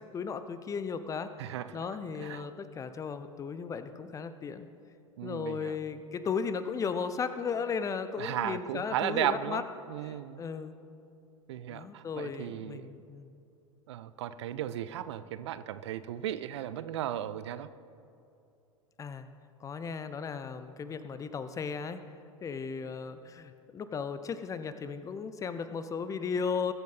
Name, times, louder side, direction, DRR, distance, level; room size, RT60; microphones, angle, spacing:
voice 1, 0.0-1.3 1.7-4.7 5.2-9.6 10.0-10.7 11.7-13.4 19.0-19.3 19.6-22.0 22.4-26.7, left 6 dB, 20° left, 11 dB, 0.6 m, -35 dB
voice 2, 1.4-1.9 2.2-2.5 5.2-5.8 8.2-9.6 9.9-10.4 11.5-12.9 13.9-17.7, right 11 dB, 55° right, 14 dB, 0.5 m, -35 dB
21.0 x 8.3 x 4.2 m, 2.7 s
figure-of-eight pair, 85°, 17 cm